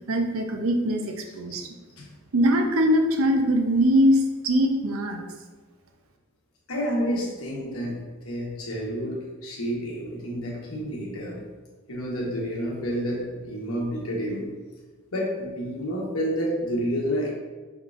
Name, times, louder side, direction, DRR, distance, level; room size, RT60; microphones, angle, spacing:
voice 1, 0.1-1.7 2.3-5.2, equal, 70° right, 3 dB, 0.6 m, -22 dB
voice 2, 6.7-11.4 11.9-14.5 15.1-17.3, equal, 85° left, -2 dB, 1.1 m, -29 dB
5.2 x 3.7 x 2.5 m, 1.3 s
head